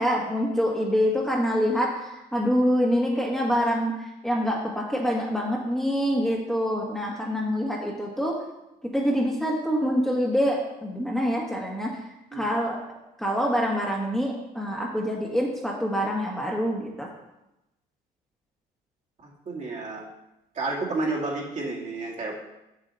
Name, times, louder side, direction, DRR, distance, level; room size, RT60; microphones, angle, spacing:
voice 1, 0.0-3.9 4.2-8.3 8.9-11.9 12.3-12.8 13.2-17.1, equal, ahead, -3 dB, 1.6 m, -25 dB
voice 2, 19.2-20.0 20.5-22.3, right 3 dB, 45° right, -2 dB, 2.2 m, -31 dB
7.5 x 7.2 x 4.1 m, 0.92 s
cardioid pair, 110°, 17 cm